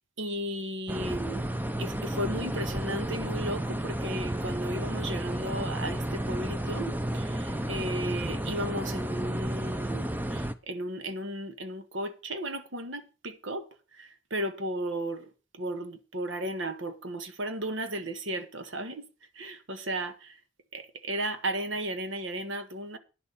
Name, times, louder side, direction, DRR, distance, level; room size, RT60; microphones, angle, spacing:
voice 1, 0.2-1.5 1.8-13.7 14.0-15.3 15.6-19.1 19.4-20.3 20.7-23.0, right 1 dB, 85° right, 1.6 m, -35 dB
sound 1, 0.9-10.5, right 1 dB, 10° right, 0.7 m, -32 dB
10.0 x 6.8 x 7.1 m
head